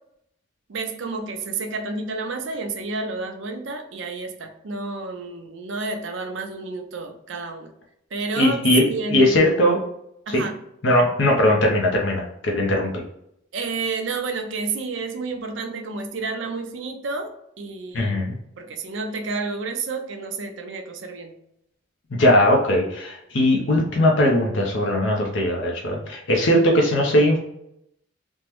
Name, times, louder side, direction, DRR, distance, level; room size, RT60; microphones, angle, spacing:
voice 1, 0.7-7.7 8.1-8.6 8.9-9.4 10.3-10.6 13.5-18.1 18.6-21.4, right 3 dB, 70° right, 5 dB, 0.5 m, -30 dB
voice 2, 8.4-9.8 10.3-10.4 10.8-13.0 17.9-18.4 22.1-27.4, left 1 dB, 70° left, 0 dB, 0.6 m, -19 dB
3.5 x 2.0 x 2.9 m, 0.78 s
head